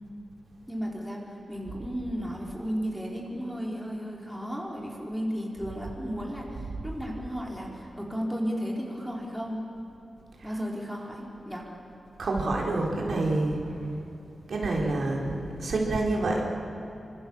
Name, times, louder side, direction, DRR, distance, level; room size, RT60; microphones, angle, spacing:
voice 1, 0.7-9.6 10.4-11.7, equal, ahead, -3 dB, 4.1 m, -34 dB
voice 2, 12.2-13.6 14.5-16.4, right 2 dB, 65° right, -1 dB, 4.0 m, -27 dB
27.5 x 25.0 x 7.1 m, 3.0 s
wide cardioid pair, 140°, 0 cm